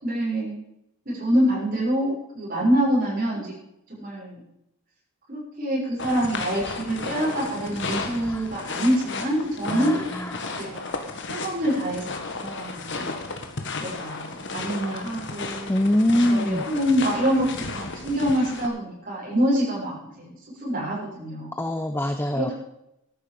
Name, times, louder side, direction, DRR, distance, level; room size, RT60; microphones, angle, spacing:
voice 1, 0.0-0.6 1.0-3.5 3.9-4.4 5.3-10.0 10.6-11.0 11.3-13.1 13.8-15.7 16.3-20.3 20.6-21.6 22.3-22.5, equal, 40° right, -6 dB, 6.5 m, -26 dB
sound 1, 6.0-18.7, left 3 dB, 55° left, 1.7 m, -34 dB
voice 2, 9.7-10.6 15.7-16.6 21.5-22.5, left 1 dB, 10° left, 8 dB, 0.6 m, -24 dB
14.5 x 11.5 x 5.3 m, 0.82 s
head